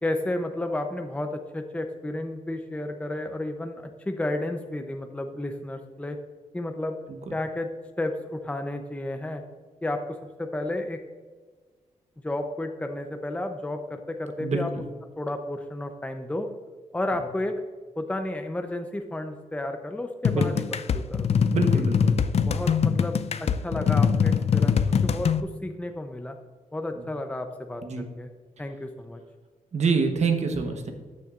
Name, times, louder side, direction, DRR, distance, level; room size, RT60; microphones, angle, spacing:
voice 1, 0.0-6.2 6.5-7.0 7.3-7.7 8.0-9.4 9.8-11.0 12.2-14.7 15.2-16.5 16.9-17.6 18.0-20.5 20.9-21.3 21.7-21.8 22.4-26.4 26.7-28.3 28.6-29.2, left 1 dB, 10° left, 5 dB, 0.7 m, -32 dB
voice 2, 14.4-14.8 20.3-20.6 21.5-22.2 26.9-27.1 27.8-28.1 29.7-30.9, right 4 dB, 55° right, 5 dB, 1.1 m, -26 dB
sound 1, 20.2-25.4, left 6 dB, 50° left, 0.5 m, -23 dB
13.5 x 6.8 x 2.5 m, 1.4 s
cardioid pair, 85°, 14 cm